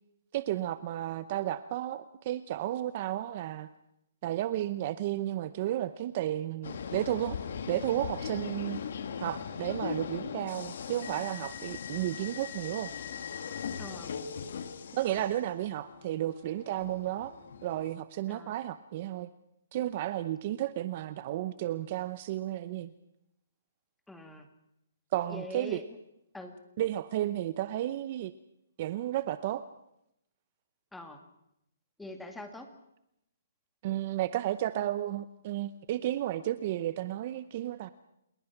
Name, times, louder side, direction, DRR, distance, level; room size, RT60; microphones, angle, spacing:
voice 1, 0.3-3.7 4.2-7.4 7.7-8.8 9.2-12.9 14.9-17.3 17.6-19.3 19.7-22.9 25.1-25.8 26.8-28.3 28.8-29.6 33.8-37.9, right 13 dB, 40° right, 14 dB, 0.8 m, -33 dB
sound 1, 6.6-17.9, left 7 dB, 60° left, 2.1 m, -40 dB
voice 2, 13.8-14.1 18.3-18.5 24.1-24.5 25.3-25.8 26.3-26.5 30.9-31.2 32.0-32.7, left 1 dB, 5° left, 5 dB, 2.2 m, -43 dB
28.0 x 20.5 x 5.9 m, 0.83 s
hypercardioid pair, 155°, 0 cm